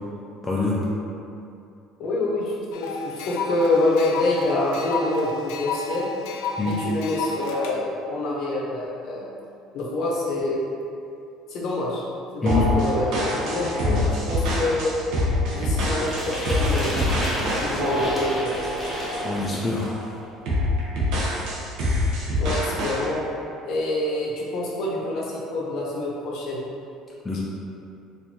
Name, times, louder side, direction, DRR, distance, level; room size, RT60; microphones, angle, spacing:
voice 1, 0.4-0.8 6.6-6.8 12.4-12.7 13.9-14.0 19.2-19.9 27.3-27.4, left 3 dB, 15° left, -6 dB, 0.3 m, -25 dB
voice 2, 2.0-5.3 5.6-6.1 6.7-9.2 9.7-10.6 11.5-12.0 12.3-14.9 15.5-17.0 17.6-18.5 22.4-23.2 23.7-26.6 27.3-27.4, left 2 dB, 50° left, -5 dB, 0.8 m, -26 dB
sound 1, 2.7-7.7, left 4 dB, 90° left, 0.4 m, -32 dB
sound 2, 12.5-19.4 19.8-20.1 20.5-23.0, left 1 dB, 60° right, 0.8 m, -25 dB
sound 3, 16.0-20.0, equal, 5° right, 0.8 m, -31 dB
4.3 x 2.6 x 2.8 m, 2.6 s
cardioid pair, 165°, 0 cm